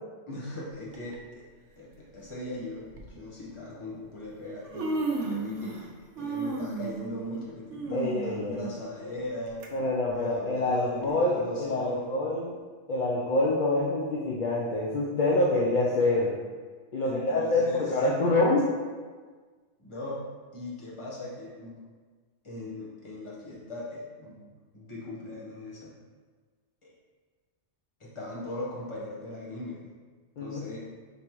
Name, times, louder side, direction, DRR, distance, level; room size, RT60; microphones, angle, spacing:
voice 1, 0.3-1.4 1.8-5.9 6.2-9.6 10.1-12.1 17.0-18.0 19.8-20.2 20.5-21.8 22.4-25.9 26.8-26.9 28.0-29.8 30.4-30.9, left 1 dB, 30° left, -6 dB, 1.0 m, -39 dB
Human voice, 0.9-1.2 2.2-2.3 2.9-3.1 4.1-4.2 4.5-5.9 6.2-9.7 10.1-10.2 11.0-11.1, right 3 dB, 80° right, 0.9 m, -34 dB
voice 2, 7.9-8.6 9.7-12.5 12.9-16.3 16.9-18.7 30.4-30.6, left 2 dB, 55° left, -4 dB, 0.6 m, -26 dB
5.2 x 3.1 x 3.0 m, 1.5 s
omnidirectional pair, 1.2 m